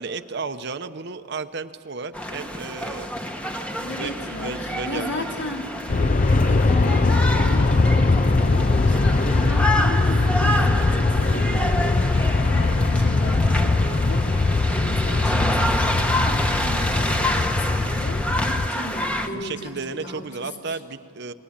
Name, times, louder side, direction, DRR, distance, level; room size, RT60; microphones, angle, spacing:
voice 1, 0.0-3.1 3.5-5.4 19.3-21.3, right 4 dB, 55° right, 10 dB, 0.9 m, -33 dB
sound 1, 2.1-19.3, equal, 5° left, 1.2 m, -28 dB
voice 2, 3.8-5.7 6.3-20.8, left 1 dB, 60° left, 1 dB, 3.0 m, -35 dB
Aircraft, 5.9-18.7, left 3 dB, 40° left, 0.5 m, -21 dB
28.5 x 21.0 x 8.7 m, 2.4 s
head